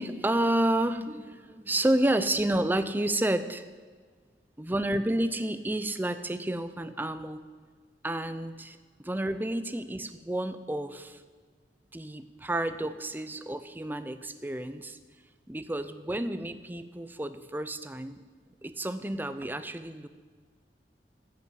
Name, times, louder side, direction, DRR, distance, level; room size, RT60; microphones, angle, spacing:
voice 1, 0.0-3.6 4.6-7.5 8.0-11.2 11.9-15.0 15.5-18.2 18.6-20.1, right 1 dB, 10° right, 11 dB, 0.5 m, -30 dB
15.0 x 5.7 x 7.5 m, 1.5 s
head